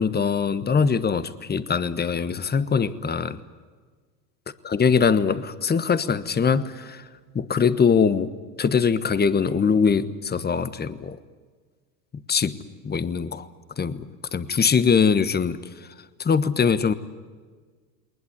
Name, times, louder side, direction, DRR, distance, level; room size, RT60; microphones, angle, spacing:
voice 1, 0.0-3.4 4.6-7.0 7.3-8.3 8.6-11.2 12.3-12.6 12.8-13.5 13.8-15.6 16.2-16.9, left 6 dB, 20° left, 14 dB, 1.2 m, -22 dB
20.5 x 20.5 x 9.7 m, 1.5 s
hypercardioid pair, 100°, 49 cm